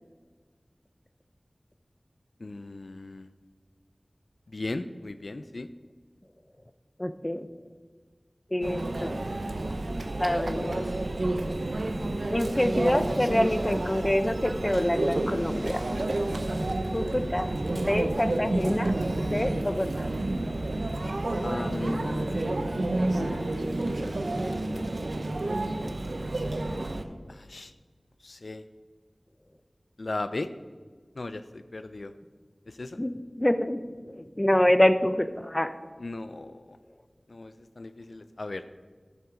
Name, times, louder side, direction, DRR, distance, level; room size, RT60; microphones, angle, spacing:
voice 1, 2.4-3.3 4.5-5.7 17.8-17.9 21.4-22.6 23.1-23.7 27.3-27.7 28.2-28.6 30.0-30.5 31.2-32.1 32.7-33.0 36.0-36.8 37.3-38.6, left 2 dB, 70° left, 11 dB, 0.4 m, -37 dB
voice 2, 7.0-7.5 8.5-9.2 10.2-10.8 12.3-15.8 16.9-18.9 19.3-20.1 33.0-33.8 34.1-35.7, left 1 dB, 25° left, 11 dB, 0.6 m, -26 dB
Conversation / Chatter / Crowd, 8.6-27.0, right 2 dB, 75° right, 0.8 m, -30 dB
13.0 x 6.9 x 5.0 m, 1.5 s
wide cardioid pair, 50°, 0 cm